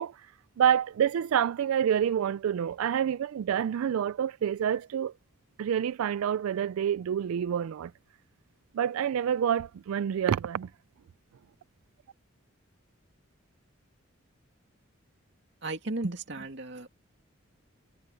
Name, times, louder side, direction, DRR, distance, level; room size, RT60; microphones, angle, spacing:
voice 1, 0.0-5.1 5.6-7.9 8.7-10.7, right 9 dB, 85° right, 0.3 m, -28 dB
voice 2, 15.6-16.9, right 2 dB, 55° right, 2.7 m, -34 dB
head